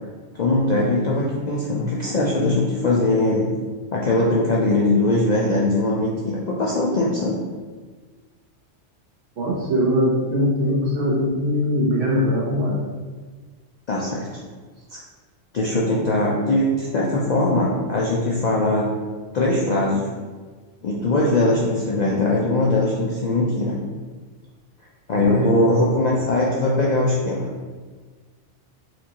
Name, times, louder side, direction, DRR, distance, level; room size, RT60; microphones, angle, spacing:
voice 1, 0.3-3.5 3.9-7.4 13.9-14.3 14.9-15.0 15.5-18.9 19.3-20.1 20.8-23.7 25.1-27.5, left 2 dB, 65° left, -4 dB, 0.4 m, -21 dB
voice 2, 9.4-12.8 25.1-25.8, equal, 75° right, -5 dB, 1.3 m, -21 dB
4.3 x 2.5 x 2.8 m, 1.4 s
omnidirectional pair, 1.3 m